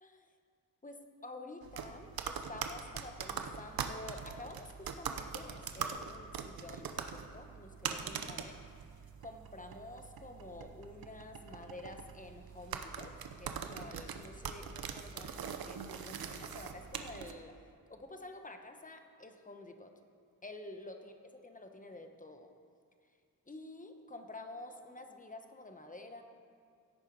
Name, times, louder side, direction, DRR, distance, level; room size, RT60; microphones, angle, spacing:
voice 1, 0.0-0.3 0.8-8.6 9.2-19.9 20.4-21.1 21.4-22.5 23.5-26.2, left 2 dB, 20° left, 5 dB, 1.1 m, -49 dB
sound 1, 1.6-17.3, right 7 dB, 90° right, 0.8 m, -42 dB
16.0 x 8.7 x 4.8 m, 2.2 s
wide cardioid pair, 90°, 35 cm